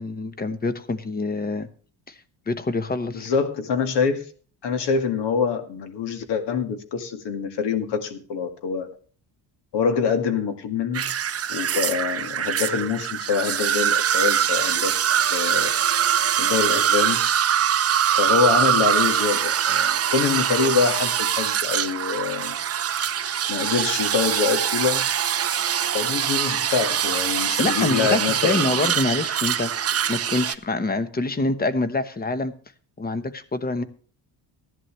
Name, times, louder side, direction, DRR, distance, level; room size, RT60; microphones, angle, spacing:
voice 1, 0.0-1.7 2.1-2.2 2.5-3.3 27.6-29.7 30.1-32.5 33.0-33.8, left 2 dB, 20° left, 12 dB, 1.0 m, -26 dB
voice 2, 3.1-4.3 4.6-8.9 9.7-11.1 11.5-15.0 15.3-15.7 16.4-17.2 18.0-22.6 23.5-25.0 25.9-28.9, left 6 dB, 65° left, 8 dB, 2.1 m, -25 dB
sound 1, 10.9-30.5, right 9 dB, 35° right, 0.7 m, -23 dB
15.5 x 11.0 x 3.2 m, 0.43 s
cardioid pair, 140°, 45 cm